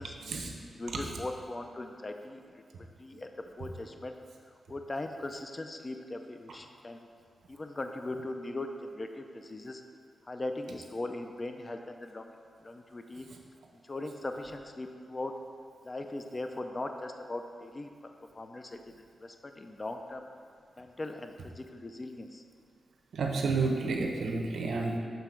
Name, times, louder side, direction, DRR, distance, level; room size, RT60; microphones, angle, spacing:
voice 1, 0.0-4.2 4.7-7.1 7.5-9.8 10.2-13.3 13.8-15.3 15.8-20.3 20.8-22.4, left 2 dB, 25° left, 5 dB, 0.4 m, -40 dB
voice 2, 23.1-25.0, right 3 dB, 80° right, 1 dB, 0.9 m, -30 dB
6.8 x 4.0 x 5.9 m, 2.2 s
wide cardioid pair, 145°, 0 cm